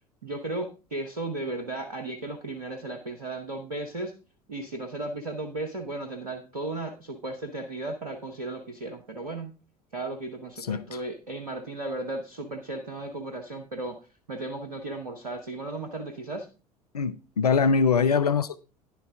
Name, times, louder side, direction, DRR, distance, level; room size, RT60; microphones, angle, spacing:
voice 1, 0.2-4.1 4.5-9.5 9.9-14.0 14.3-16.5, right 2 dB, 80° right, 0.9 m, -35 dB
voice 2, 10.6-11.0 16.9-18.6, left 5 dB, 85° left, 0.4 m, -23 dB
10.5 x 7.5 x 3.6 m
figure-of-eight pair, 65°, 19 cm